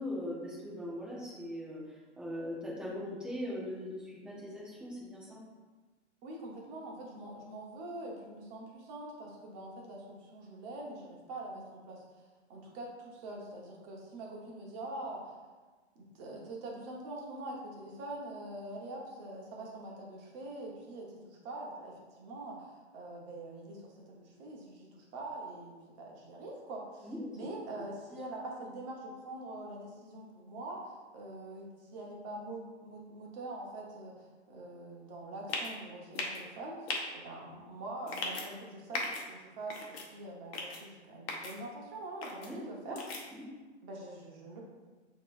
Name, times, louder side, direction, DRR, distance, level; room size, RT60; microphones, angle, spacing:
voice 1, 0.0-5.4 27.0-27.5 42.3-42.6 42.9-43.0 43.3-43.5, left 1 dB, ahead, -7 dB, 1.0 m, -40 dB
voice 2, 6.2-12.0 12.5-15.4 15.9-27.1 27.3-43.0 43.8-44.6, right 2 dB, 35° right, -2 dB, 1.1 m, -44 dB
sound 1, 35.5-35.7 36.1-36.4 36.9-37.0 38.1-38.5 38.9-39.2 39.7-40.1 40.5-40.8 41.3-41.5 42.2-42.5 43.0-43.2, left 3 dB, 60° left, 1.0 m, -37 dB
6.4 x 3.1 x 2.5 m, 1.3 s
hypercardioid pair, 120°, 35 cm